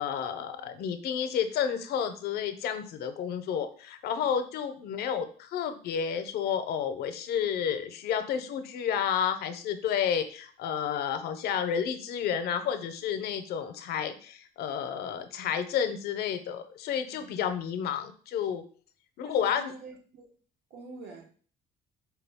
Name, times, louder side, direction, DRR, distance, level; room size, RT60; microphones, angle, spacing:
voice 1, 0.0-18.6 19.2-19.7, left 8 dB, 70° left, 0.5 m, -31 dB
voice 2, 19.2-20.3 20.7-21.3, right 3 dB, 80° right, 1.1 m, -46 dB
4.5 x 2.3 x 3.4 m
cardioid pair, 110°, 17 cm